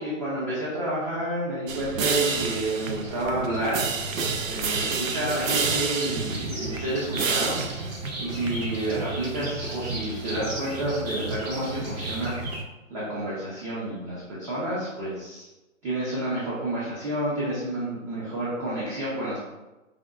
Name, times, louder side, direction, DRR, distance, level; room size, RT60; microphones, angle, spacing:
voice 1, 0.0-3.8 4.5-7.6 8.2-12.3 12.9-15.4 15.8-19.4, right 1 dB, 25° right, -8 dB, 0.6 m, -29 dB
sound 1, 1.7-12.6, right 4 dB, 75° right, 0.6 m, -30 dB
sound 2, 5.2-12.6, right 1 dB, 50° right, 1.3 m, -38 dB
4.9 x 2.3 x 2.3 m, 1.0 s
hypercardioid pair, 145°, 40 cm